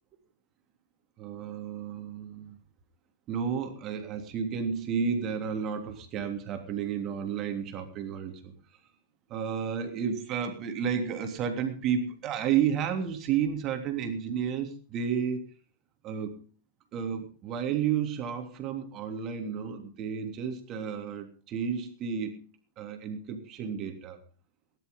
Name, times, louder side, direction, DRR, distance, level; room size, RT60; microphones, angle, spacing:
voice 1, 1.2-2.6 3.3-8.5 9.3-15.4 16.0-16.4 16.9-22.5 22.8-24.2, right 7 dB, 35° right, 5 dB, 3.1 m, -32 dB
18.5 x 11.0 x 5.4 m, 0.40 s
figure-of-eight pair, 90°, 0 cm